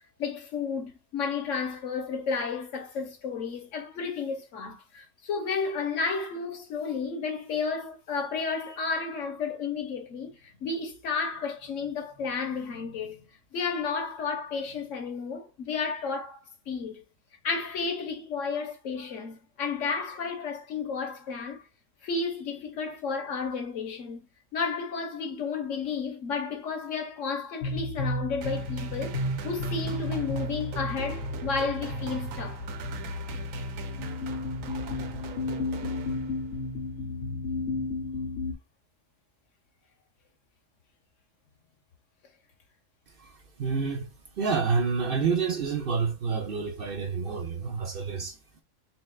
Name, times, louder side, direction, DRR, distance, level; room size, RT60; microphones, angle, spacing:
voice 1, 0.2-13.2 13.5-16.4 16.7-17.0 17.4-21.6 22.0-24.2 24.5-32.6, left 5 dB, 70° left, 1.2 m, -32 dB
sound 1, 27.6-38.5, left 2 dB, 55° left, 0.9 m, -33 dB
sound 2, 28.4-36.7, right 8 dB, 85° right, 1.0 m, -41 dB
voice 2, 43.2-48.4, right 5 dB, 55° right, 0.8 m, -29 dB
4.4 x 3.2 x 2.3 m
omnidirectional pair, 1.3 m